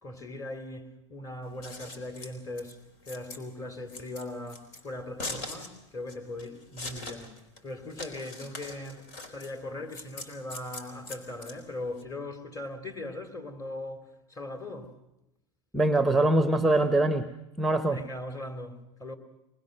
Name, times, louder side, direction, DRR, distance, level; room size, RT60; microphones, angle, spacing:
voice 1, 0.0-2.8 3.0-7.3 7.6-14.9 17.9-19.2, left 1 dB, 20° left, 3.0 m, -39 dB
Scissors, 1.4-12.0, left 2 dB, 65° left, 4.1 m, -42 dB
voice 2, 15.7-17.3 17.6-18.0, right 2 dB, ahead, 1.0 m, -23 dB
24.0 x 20.5 x 6.6 m
hypercardioid pair, 105°, 16 cm